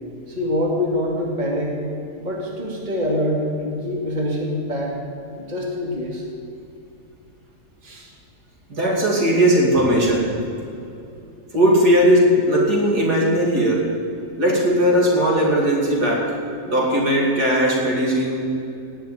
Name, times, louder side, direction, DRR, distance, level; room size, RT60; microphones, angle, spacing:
voice 1, 0.3-1.8 2.2-5.0 5.4-6.2 7.8-8.1, left 1 dB, 25° right, -2 dB, 2.5 m, -25 dB
voice 2, 8.7-10.4 11.5-14.0 14.4-16.4 16.7-18.6, equal, 70° right, -2 dB, 3.2 m, -18 dB
17.5 x 6.7 x 9.3 m, 2.7 s
omnidirectional pair, 1.8 m